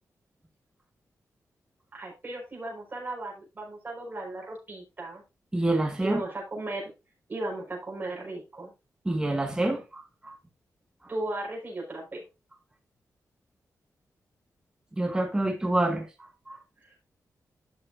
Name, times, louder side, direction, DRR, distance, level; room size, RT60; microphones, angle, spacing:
voice 1, 1.9-5.2 6.0-6.9 7.3-8.7 11.1-12.3 16.8-16.9, right 2 dB, 30° right, 5.0 m, -36 dB
voice 2, 5.5-6.2 9.1-10.4 14.9-16.1 16.5-16.6, right 2 dB, 10° right, 1.8 m, -27 dB
12.0 x 6.4 x 2.6 m
wide cardioid pair, 140°, 6 cm